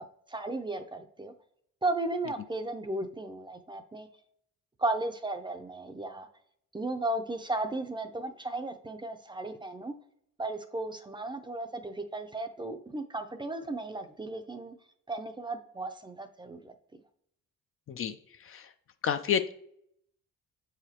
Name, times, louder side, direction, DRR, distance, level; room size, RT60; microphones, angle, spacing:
voice 1, 0.0-1.3 1.8-4.1 4.8-6.3 6.7-9.9 10.4-14.7 15.1-16.7, right 2 dB, 15° right, 7 dB, 0.5 m, -35 dB
voice 2, 19.0-19.5, left 8 dB, 45° left, 10 dB, 0.4 m, -29 dB
7.2 x 4.9 x 2.9 m, 0.70 s
cardioid pair, 90°, 30 cm